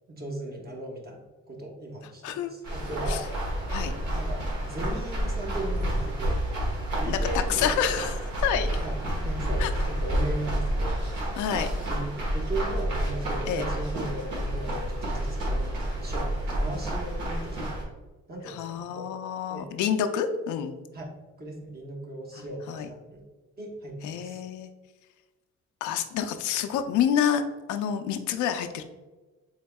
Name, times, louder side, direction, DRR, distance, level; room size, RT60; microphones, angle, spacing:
voice 1, 0.1-3.3 4.1-6.4 7.0-8.0 8.8-9.0 9.2-10.9 11.9-17.7 18.3-19.1 19.5-19.7 20.9-21.0 21.4-23.2 23.6-24.4, right 1 dB, 30° right, -1 dB, 0.9 m, -37 dB
sound 1, 2.6-17.8, right 1 dB, 70° right, 1.4 m, -29 dB
voice 2, 7.5-8.8 9.6-9.7 11.4-11.7 13.5-13.7 18.4-20.7 22.3-22.9 24.0-24.7 25.8-27.4 27.7-28.8, left 8 dB, 75° left, 7 dB, 0.4 m, -28 dB
3.9 x 3.5 x 2.2 m, 1.2 s
cardioid pair, 90°, 30 cm